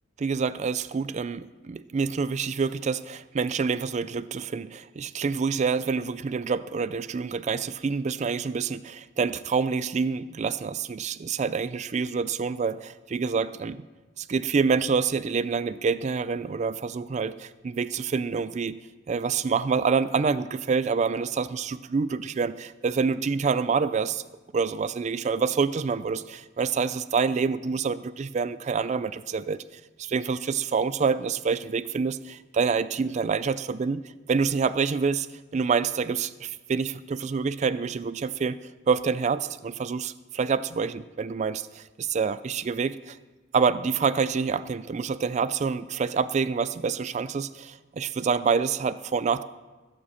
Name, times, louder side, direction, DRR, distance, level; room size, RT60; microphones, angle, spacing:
voice 1, 0.2-13.8 14.2-18.8 19.1-24.2 24.5-29.6 30.0-34.0 34.3-35.3 35.5-43.2 43.5-49.4, right 5 dB, 35° right, 15 dB, 0.3 m, -27 dB
15.5 x 7.6 x 7.1 m, 1.3 s
head